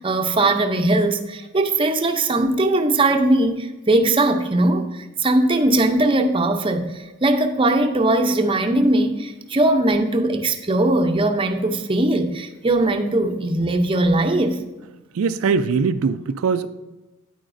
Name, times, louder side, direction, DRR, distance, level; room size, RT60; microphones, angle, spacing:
voice 1, 0.0-14.6, right 2 dB, 25° right, 0.6 m, -20 dB
voice 2, 15.1-16.7, right 5 dB, 80° right, 0.4 m, -21 dB
9.4 x 8.8 x 2.6 m
head